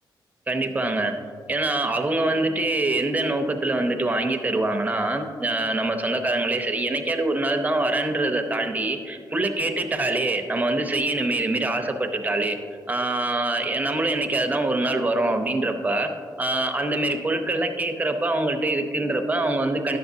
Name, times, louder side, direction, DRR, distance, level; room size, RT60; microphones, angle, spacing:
voice 1, 0.5-1.1 1.5-12.6 12.9-16.1 16.4-20.0, right 2 dB, 20° right, 6 dB, 0.7 m, -24 dB
11.0 x 7.1 x 2.7 m, 2.1 s
cardioid pair, 115°, 8 cm